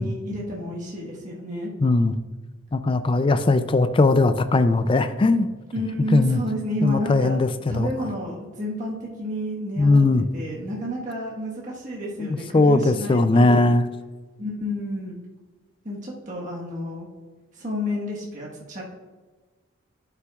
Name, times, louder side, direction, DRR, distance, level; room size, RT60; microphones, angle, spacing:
voice 1, 0.0-1.7 5.7-7.4 7.7-10.0 10.3-13.6 14.4-15.2 15.8-17.1 17.5-18.8, equal, 40° right, -4 dB, 1.3 m, -30 dB
voice 2, 1.8-2.1 2.7-5.5 6.1-6.4 6.8-7.9 9.8-10.3 12.2-13.9, left 2 dB, 25° left, 11 dB, 0.3 m, -19 dB
11.5 x 5.8 x 2.3 m, 1.3 s
head